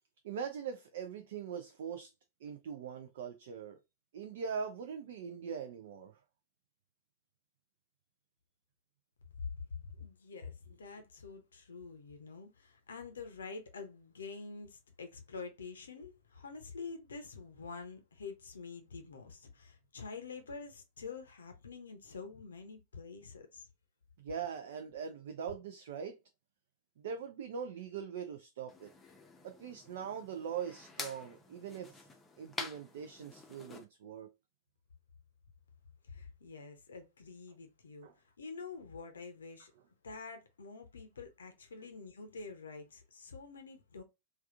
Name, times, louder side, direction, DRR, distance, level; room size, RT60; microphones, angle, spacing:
voice 1, 0.2-2.1 2.4-3.8 4.1-6.1 24.2-26.2 27.0-28.9 29.4-32.1 32.4-34.3 38.0-38.1, right 7 dB, 60° right, 0.3 m, -42 dB
voice 2, 9.4-23.7 36.1-39.7 40.0-44.0, left 4 dB, 70° left, 0.6 m, -47 dB
sound 1, 28.7-33.8, left 4 dB, 15° left, 0.6 m, -48 dB
3.4 x 2.3 x 2.3 m
figure-of-eight pair, 90°, 0 cm